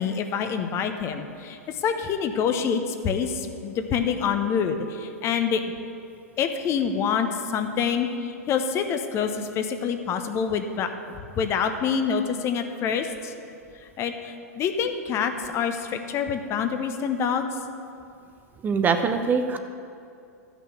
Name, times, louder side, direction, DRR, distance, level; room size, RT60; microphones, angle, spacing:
voice 1, 0.0-5.6 6.4-10.9 11.3-13.3 14.0-17.5, left 6 dB, 30° left, 7 dB, 0.9 m, -26 dB
voice 2, 18.6-19.6, right 5 dB, 20° right, 7 dB, 0.6 m, -23 dB
13.0 x 6.1 x 7.0 m, 2.5 s
figure-of-eight pair, 100°, 9 cm